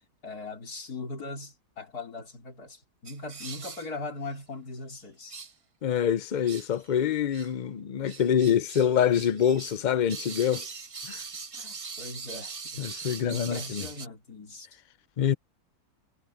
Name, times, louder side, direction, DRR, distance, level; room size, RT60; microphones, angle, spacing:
voice 1, 0.2-5.4 11.5-14.7, left 3 dB, 80° left, 4.0 m, -40 dB
sound 1, 3.1-3.9 4.3-4.4 5.3-5.5 6.4-6.9 7.3-7.5 8.0-9.8 10.1-14.1, right 5 dB, 40° right, 0.5 m, -41 dB
voice 2, 5.8-10.7 11.0-11.2 12.8-13.8 15.2-15.3, left 9 dB, 55° left, 0.5 m, -25 dB
omnidirectional pair, 1.6 m